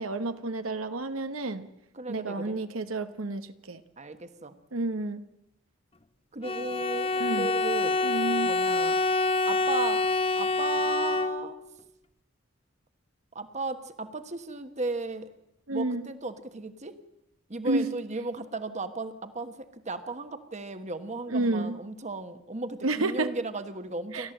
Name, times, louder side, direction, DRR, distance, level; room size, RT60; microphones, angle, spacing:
voice 1, 0.0-1.7 2.1-3.8 4.7-5.2 7.2-7.5 8.0-8.5 15.7-16.1 17.6-17.9 21.3-21.8 22.8-23.3 24.1-24.3, right 2 dB, 80° right, 9 dB, 1.1 m, -30 dB
voice 2, 1.9-2.6 4.0-4.6 6.3-8.0 8.4-9.0 9.5-10.1 10.4-11.6 13.3-15.3 15.7-16.9 17.5-24.3, right 3 dB, 35° right, 9 dB, 1.3 m, -35 dB
Bowed string instrument, 6.4-11.7, left 3 dB, 30° left, 0.8 m, -27 dB
29.5 x 13.0 x 7.9 m, 0.87 s
head